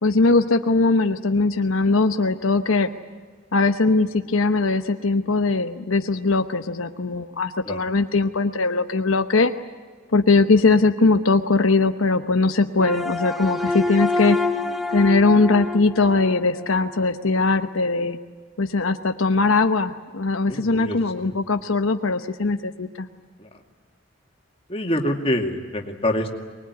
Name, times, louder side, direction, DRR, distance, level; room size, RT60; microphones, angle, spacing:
voice 1, 0.0-2.9 3.5-9.5 10.1-14.4 14.9-18.2 18.6-23.1, left 3 dB, 80° left, 7 dB, 1.0 m, -20 dB
sound 1, 12.8-17.1, left 2 dB, ahead, 1.0 m, -27 dB
voice 2, 20.5-21.3 23.4-23.5 24.7-26.3, left 1 dB, 25° left, 3 dB, 2.3 m, -26 dB
23.5 x 21.0 x 9.5 m, 1.5 s
head